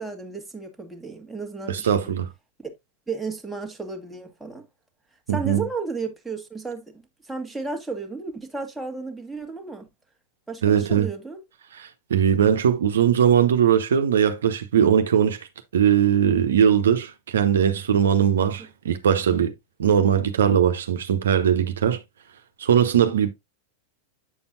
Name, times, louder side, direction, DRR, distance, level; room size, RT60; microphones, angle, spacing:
voice 1, 0.0-2.1 2.6-2.7 3.1-4.6 5.3-9.9 10.5-11.4 18.6-18.7, right 4 dB, 5° right, 1.6 m, -33 dB
voice 2, 1.7-2.3 5.3-5.6 10.6-11.1 11.7-15.4 15.7-19.5 19.8-22.0 22.6-23.3, right 8 dB, 65° right, 1.0 m, -20 dB
8.6 x 7.0 x 2.5 m
figure-of-eight pair, 90°, 0 cm